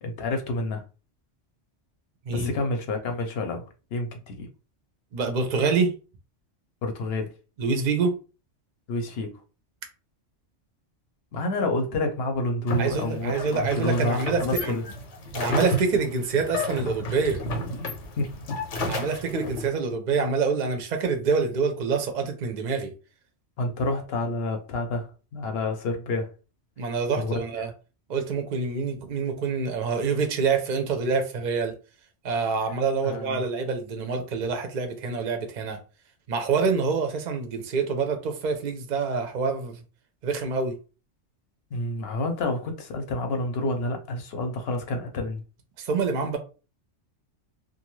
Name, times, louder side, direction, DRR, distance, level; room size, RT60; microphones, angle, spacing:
voice 1, 0.0-0.8 2.3-4.5 6.8-7.3 8.9-9.4 11.3-14.8 17.6-17.8 18.2-18.6 18.8-19.1 23.6-26.3 27.1-27.7 33.0-33.4 41.7-45.4, left 2 dB, 65° left, 0.8 m, -29 dB
voice 2, 5.1-5.9 7.6-8.2 12.8-14.8 15.3-17.4 18.9-22.9 26.8-27.7 28.1-31.7 32.2-35.8 36.3-39.8 40.2-40.8 45.8-46.4, right 5 dB, 55° right, 0.6 m, -26 dB
sound 1, 12.7-19.7, left 1 dB, 85° left, 1.0 m, -32 dB
2.5 x 2.3 x 3.0 m
omnidirectional pair, 1.2 m